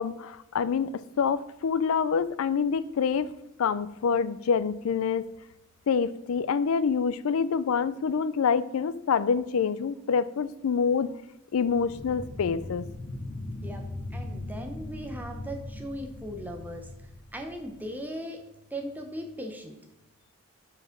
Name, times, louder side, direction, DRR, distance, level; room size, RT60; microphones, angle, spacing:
voice 1, 0.0-3.3 3.6-5.3 5.9-11.1 11.5-12.9, left 6 dB, 85° left, 16 dB, 0.4 m, -26 dB
sound 1, 11.7-18.1, left 2 dB, 25° left, 0.5 m, -39 dB
voice 2, 14.1-16.8 17.3-18.4 18.7-19.7, equal, 10° right, 3 dB, 0.8 m, -38 dB
5.3 x 4.8 x 5.9 m, 0.88 s
head